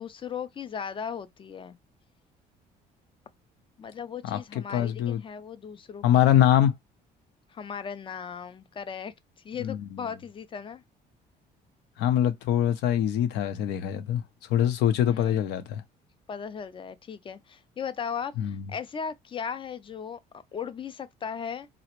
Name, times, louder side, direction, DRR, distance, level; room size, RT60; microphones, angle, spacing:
voice 1, 0.0-1.8 3.8-6.3 7.5-9.1 9.4-10.8 15.0-15.4 16.3-21.7, left 7 dB, 30° left, 0.4 m, -37 dB
voice 2, 4.2-5.2 6.0-6.7 9.6-10.1 12.0-14.2 14.5-15.8 18.4-18.7, left 11 dB, 85° left, 0.6 m, -24 dB
3.9 x 2.1 x 2.9 m
cardioid pair, 110°, 17 cm